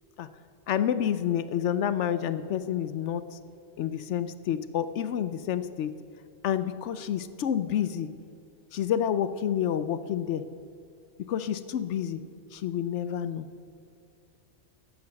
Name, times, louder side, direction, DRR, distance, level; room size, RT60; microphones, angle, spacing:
voice 1, 0.7-3.4 3.8-5.9 6.4-8.1 8.7-10.4 11.3-12.2 12.5-13.5, left 9 dB, 75° left, 13 dB, 0.9 m, -29 dB
12.5 x 8.7 x 6.3 m, 2.6 s
omnidirectional pair, 1.2 m